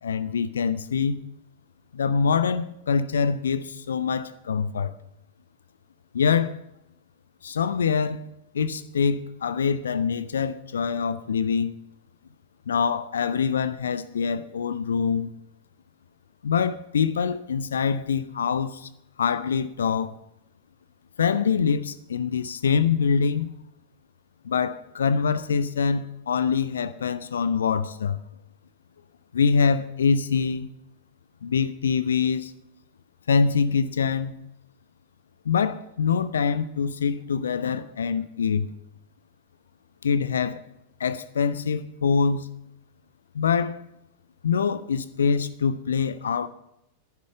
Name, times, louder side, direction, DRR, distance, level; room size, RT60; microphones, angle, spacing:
voice 1, 0.0-1.2 1.9-4.9 6.1-6.6 7.4-8.3 8.5-11.7 12.7-15.3 16.4-18.9 19.2-20.2 21.2-23.5 24.4-28.2 29.3-30.7 31.4-32.5 33.3-34.3 35.4-38.7 40.0-40.6 41.0-42.5 43.3-43.8 44.4-46.5, left 6 dB, 70° left, 0.6 m, -24 dB
11.5 x 10.5 x 6.7 m
figure-of-eight pair, 90°, 0 cm